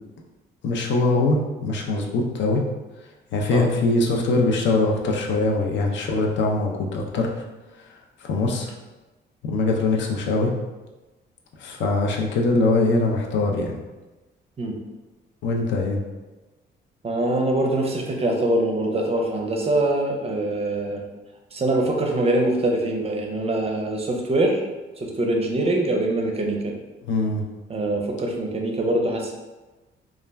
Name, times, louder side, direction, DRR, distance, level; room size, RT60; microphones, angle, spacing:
voice 1, 0.6-2.6 3.3-7.3 8.2-8.7 9.4-10.5 11.6-13.8 15.4-16.0 27.1-27.4, left 2 dB, 70° left, 1 dB, 0.5 m, -22 dB
voice 2, 17.0-21.0 21.5-24.6 25.0-26.8 27.7-29.3, right 1 dB, 30° right, 1 dB, 0.5 m, -23 dB
2.3 x 2.1 x 3.3 m, 1.2 s
cardioid pair, 90°, 20 cm